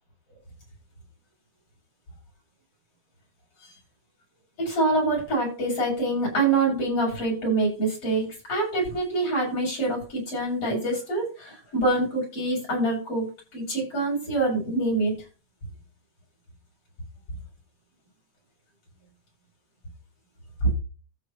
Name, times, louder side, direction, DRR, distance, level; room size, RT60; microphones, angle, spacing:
voice 1, 4.6-15.2 20.6-20.7, right 2 dB, 50° left, -3 dB, 7.8 m, -25 dB
14.0 x 4.7 x 5.6 m, 0.34 s
omnidirectional pair, 3.3 m